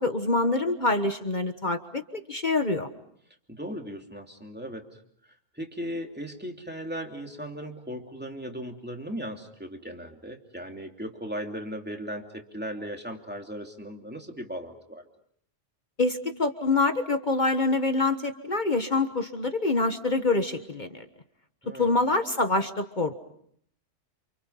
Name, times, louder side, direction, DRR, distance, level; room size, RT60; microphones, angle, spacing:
voice 1, 0.0-2.9 16.0-21.0 21.7-23.2, left 3 dB, 40° left, 7 dB, 1.4 m, -26 dB
voice 2, 3.5-5.0 5.5-15.1 21.6-22.0, equal, 10° right, 2 dB, 2.9 m, -37 dB
29.0 x 28.5 x 5.7 m, 0.67 s
omnidirectional pair, 1.3 m